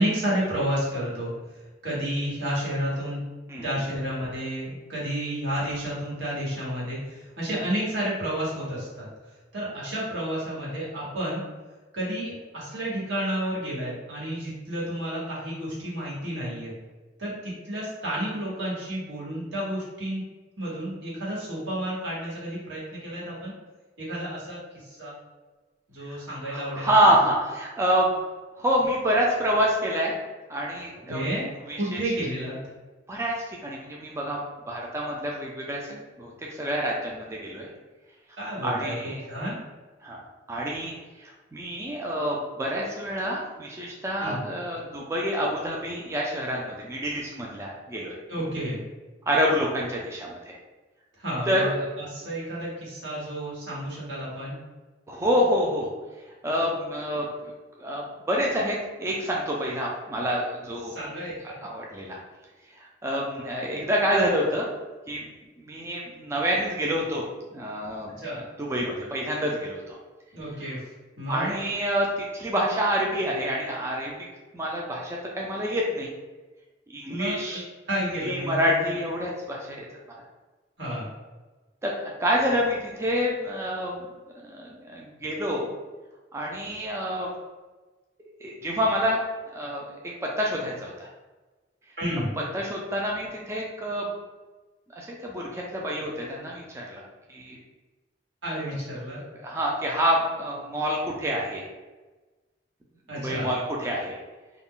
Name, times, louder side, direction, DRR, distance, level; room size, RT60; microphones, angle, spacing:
voice 1, 0.0-1.3 1.8-3.2 3.6-9.1 9.5-11.4 11.9-16.7 17.2-20.2 20.6-23.5 24.0-25.1 25.9-27.1 31.1-32.6 35.9-36.0 38.4-39.0 39.2-39.5 44.2-44.4 48.3-48.8 51.2-54.6 60.8-61.6 68.2-68.4 70.3-70.9 71.2-71.5 77.1-77.6 77.9-78.8 80.8-81.1 92.0-92.3 98.4-99.2 103.1-103.5, equal, 85° right, -7 dB, 1.2 m, -31 dB
voice 2, 26.1-28.1 28.6-30.1 30.5-31.2 31.7-32.0 33.1-35.9 36.2-37.7 38.6-39.2 40.0-40.2 40.5-40.9 41.2-48.2 49.3-50.6 51.5-51.7 55.1-55.9 56.4-57.3 57.8-60.9 61.6-62.2 62.8-64.7 65.1-65.3 65.6-67.3 67.5-68.1 68.6-70.0 71.3-74.1 74.5-76.1 76.9-77.6 78.2-79.9 81.8-81.9 82.2-84.1 84.4-85.7 86.3-87.3 88.4-89.2 89.5-89.8 90.2-91.1 92.5-94.1 95.0-97.0 97.3-97.6 99.4-101.7 103.2-104.2, equal, 15° right, -2 dB, 0.3 m, -27 dB
2.4 x 2.1 x 3.6 m, 1.2 s
head